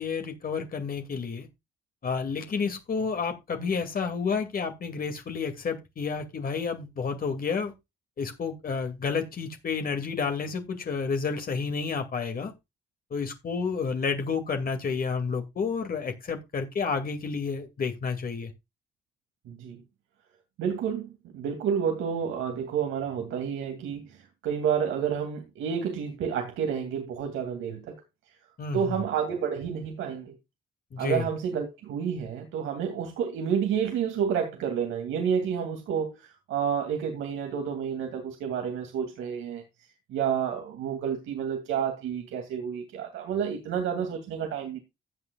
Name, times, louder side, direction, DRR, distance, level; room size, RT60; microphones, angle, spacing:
voice 1, 0.0-1.5 2.0-7.7 8.2-12.5 13.1-18.5 28.6-28.9 30.9-31.3, left 5 dB, 45° left, 2.4 m, -30 dB
voice 2, 19.5-19.8 20.6-28.0 28.3-28.4 28.7-30.3 31.0-39.6 40.1-44.8, right 7 dB, 85° right, 2.5 m, -30 dB
15.0 x 8.0 x 2.3 m
cardioid pair, 90°, 20 cm